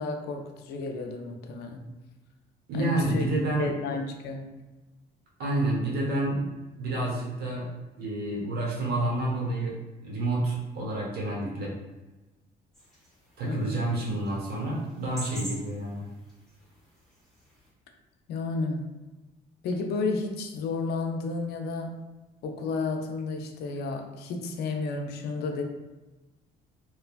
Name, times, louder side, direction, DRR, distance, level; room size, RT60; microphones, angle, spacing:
voice 1, 0.0-1.8 2.7-3.3 3.6-4.5 13.5-13.8 18.3-18.9 19.6-21.9 22.4-25.6, left 3 dB, 75° left, 4 dB, 0.5 m, -32 dB
voice 2, 2.7-3.7 5.4-6.4 6.8-7.7 8.0-9.8 10.0-11.7 13.4-16.1, right 1 dB, 70° right, -3 dB, 1.0 m, -29 dB
sound 1, 12.7-17.7, equal, ahead, 1.2 m, -46 dB
2.9 x 2.2 x 2.4 m, 1.1 s
cardioid pair, 110°, 17 cm